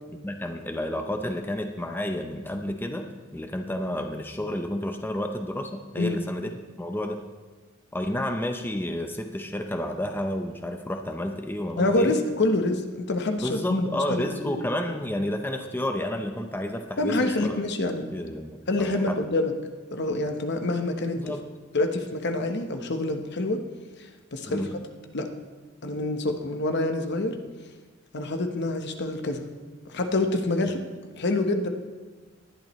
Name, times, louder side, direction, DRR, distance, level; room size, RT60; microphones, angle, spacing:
voice 1, 0.2-7.2 7.9-12.2 13.4-17.6 18.1-19.2 21.2-21.4 24.5-24.8, left 1 dB, 10° left, 5 dB, 0.7 m, -31 dB
voice 2, 11.8-13.9 14.1-14.7 17.0-18.1 18.7-19.5 19.9-21.4 21.7-23.6 24.3-24.7 25.1-25.3 25.8-27.3 28.1-29.4 29.9-30.8 31.2-31.7, left 2 dB, 60° left, 6 dB, 1.1 m, -26 dB
19.0 x 11.5 x 3.2 m, 1.3 s
head